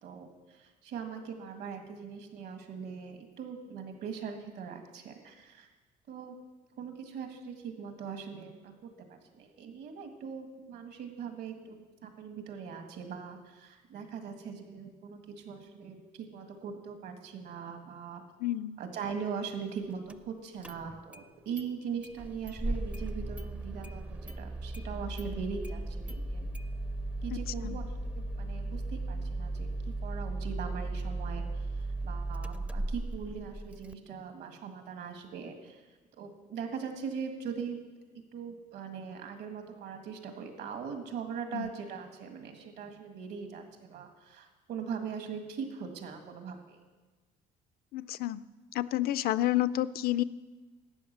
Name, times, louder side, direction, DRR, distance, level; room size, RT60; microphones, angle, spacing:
voice 1, 0.0-5.7 6.1-6.3 6.8-18.2 18.8-26.5 27.2-29.7 30.0-35.8 36.2-37.8 38.3-46.8, right 6 dB, 75° right, 5 dB, 1.9 m, -41 dB
voice 2, 18.4-18.8 27.3-27.4 27.6-27.8 41.5-41.7 47.9-48.4 48.7-50.2, left 14 dB, 65° left, 18 dB, 0.4 m, -30 dB
Engine starting, 20.1-20.2 20.6-21.3 21.6-21.7 22.0-33.9, right 2 dB, 10° right, 0.4 m, -36 dB
12.0 x 8.5 x 6.7 m, 1.3 s
cardioid pair, 110°, 17 cm